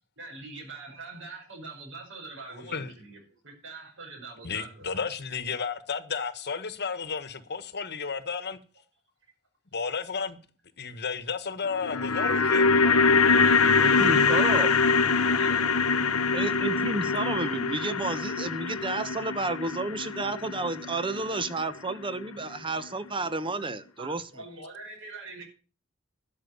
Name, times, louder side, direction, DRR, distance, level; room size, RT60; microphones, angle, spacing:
voice 1, 0.2-5.0 11.0-11.1 12.8-15.7 23.6-23.7 24.0-25.4, right 3 dB, 60° right, 5.4 m, -44 dB
voice 2, 2.6-2.9 4.4-8.6 9.7-10.4 10.8-12.7, left 5 dB, 50° left, 1.3 m, -32 dB
sound 1, 11.7-21.9 22.2-22.3, left 4 dB, 85° left, 0.9 m, -24 dB
voice 3, 13.8-14.7 16.3-24.3, right 2 dB, 25° right, 1.0 m, -31 dB
12.5 x 6.2 x 9.5 m
head